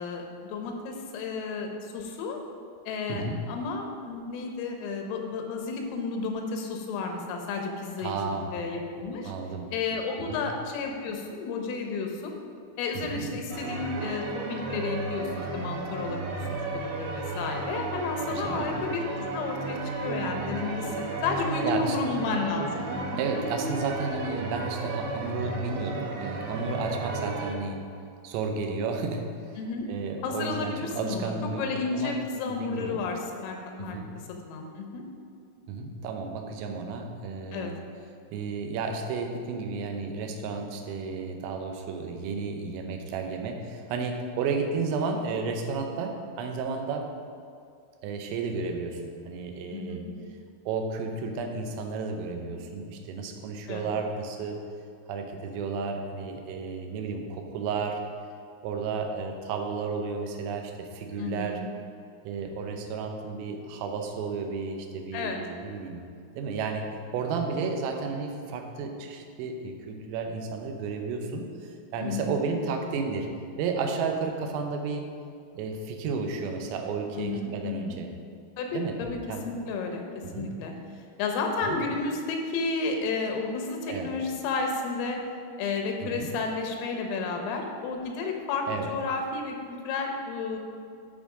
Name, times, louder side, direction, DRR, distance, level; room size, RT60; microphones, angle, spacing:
voice 1, 0.0-2.4 2.9-9.3 9.7-12.4 12.8-16.4 16.7-23.2 29.6-29.9 30.2-31.3 31.6-34.0 34.4-35.0 37.5-37.7 49.7-50.1 53.7-53.9 61.2-61.7 65.1-65.4 72.0-72.4 77.1-78.0 78.6-79.2 79.5-80.0 80.3-80.7 81.2-85.2 85.6-90.6, left 4 dB, 85° left, 2 dB, 3.5 m, -32 dB
voice 2, 3.1-3.5 8.0-8.5 9.3-9.7 10.3-10.5 13.0-13.3 18.3-18.8 21.6-22.0 23.2-27.9 28.2-29.6 29.9-32.2 32.5-33.0 33.8-34.1 35.7-37.8 38.3-47.1 48.0-50.1 50.7-54.6 55.1-58.0 58.6-61.6 62.3-66.1 66.4-73.3 73.6-75.1 75.5-78.1 78.7-79.0 79.3-79.5 80.2-80.6 81.6-81.8 83.9-84.1 86.0-86.3 88.7-88.9, right 4 dB, 85° right, 4 dB, 3.5 m, -32 dB
sound 1, 13.5-27.5, right 3 dB, 70° right, 2.9 m, -33 dB
12.5 x 4.6 x 4.9 m, 2.3 s
omnidirectional pair, 5.8 m